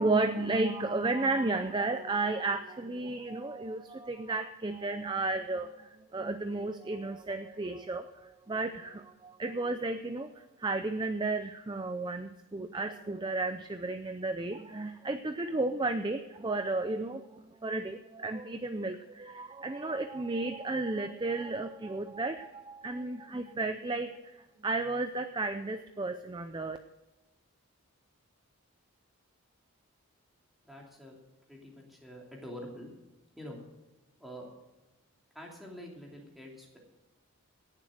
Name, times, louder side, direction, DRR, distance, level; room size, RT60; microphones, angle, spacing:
voice 1, 0.0-10.3 10.6-26.8, right 2 dB, 20° right, 9 dB, 0.5 m, -33 dB
voice 2, 30.6-31.2 31.5-32.9 33.4-33.6 34.2-34.5 35.3-36.8, equal, ahead, -2 dB, 2.7 m, -46 dB
18.0 x 7.5 x 6.4 m, 1.1 s
head